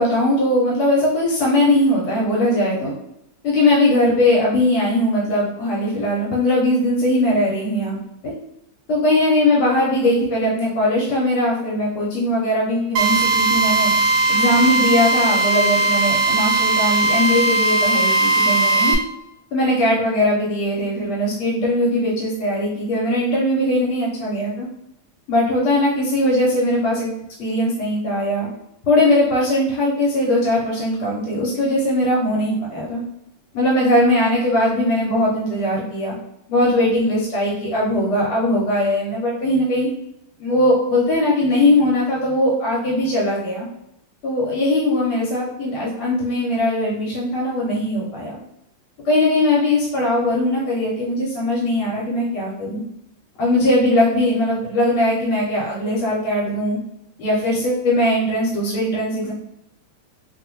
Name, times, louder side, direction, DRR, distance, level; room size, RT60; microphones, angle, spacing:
voice 1, 0.0-2.9 3.4-8.0 8.2-8.3 8.9-13.9 14.3-18.9 19.5-24.7 25.3-28.5 28.8-33.0 33.5-36.1 36.5-39.9 40.4-43.7 44.2-48.4 49.0-52.8 53.4-56.8 57.2-59.3, left 1 dB, 75° left, -4 dB, 1.5 m, -20 dB
Drill, 13.0-19.0, right 2 dB, 90° right, 1.5 m, -18 dB
3.6 x 2.1 x 3.0 m, 0.82 s
omnidirectional pair, 2.4 m